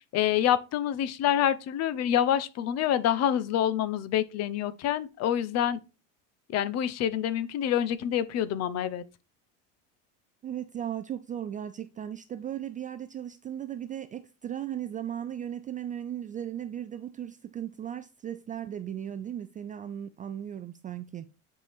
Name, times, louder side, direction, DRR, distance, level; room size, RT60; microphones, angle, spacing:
voice 1, 0.1-5.8 6.5-9.0, left 10 dB, 40° left, 0.8 m, -27 dB
voice 2, 10.4-21.3, right 10 dB, 20° right, 0.3 m, -37 dB
9.0 x 4.6 x 3.5 m
supercardioid pair, 125°, 38 cm